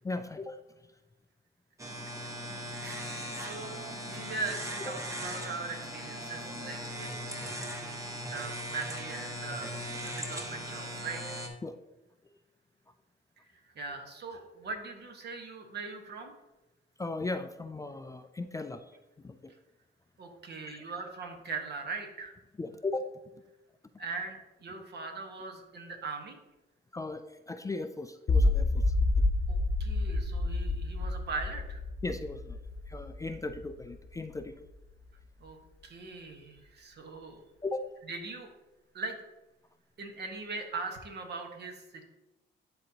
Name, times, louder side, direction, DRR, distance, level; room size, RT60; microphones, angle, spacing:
voice 1, 0.0-0.6 4.1-4.2 11.6-11.8 17.0-18.8 19.2-19.5 20.7-20.8 22.6-23.0 26.9-28.9 32.0-32.6 32.9-34.6 37.6-37.9, left 3 dB, 15° left, 8 dB, 0.3 m, -37 dB
sound 1, 1.8-11.5, equal, 15° right, 1.2 m, -39 dB
voice 2, 2.8-3.8 4.1-7.1 7.8-9.7 10.0-11.4 13.4-13.5 13.7-16.3 20.2-22.3 24.0-26.4 29.5-31.8 35.4-35.6 35.8-37.4 38.0-38.5 38.9-39.2 40.0-42.0, right 4 dB, 55° right, 4 dB, 1.4 m, -40 dB
sound 2, 28.3-34.4, left 2 dB, 45° left, 0.9 m, -29 dB
11.5 x 4.0 x 2.9 m, 1.0 s
cardioid pair, 90°, 20 cm